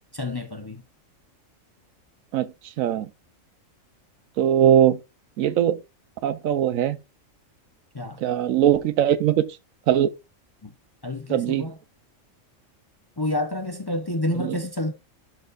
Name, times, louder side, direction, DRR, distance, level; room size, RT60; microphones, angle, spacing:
voice 1, 0.1-0.8 7.9-8.2 10.6-10.7 11.0-11.8 13.2-14.9, left 1 dB, 25° left, 0.6 m, -29 dB
voice 2, 4.4-5.0 5.4-5.8 6.2-7.0 8.2-9.4 9.9-10.1 11.3-11.7 14.4-14.6, right 10 dB, 90° right, 1.1 m, -20 dB
12.0 x 4.1 x 2.5 m
omnidirectional pair, 1.4 m